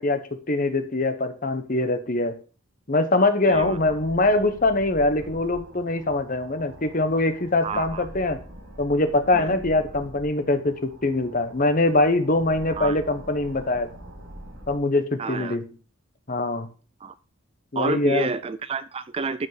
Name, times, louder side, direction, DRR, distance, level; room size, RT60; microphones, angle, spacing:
voice 1, 0.0-2.3 2.9-8.4 8.8-13.9 14.7-15.6 16.3-16.7 17.7-18.3, left 2 dB, 40° left, 9 dB, 1.1 m, -23 dB
voice 2, 3.5-3.8 7.6-8.1 9.3-9.6 12.7-13.0 15.2-15.6 17.0-17.1 17.8-19.5, right 4 dB, 25° right, 14 dB, 0.4 m, -29 dB
sound 1, 3.5-14.8, equal, 65° right, 6.1 m, -44 dB
12.0 x 5.4 x 4.9 m, 0.38 s
head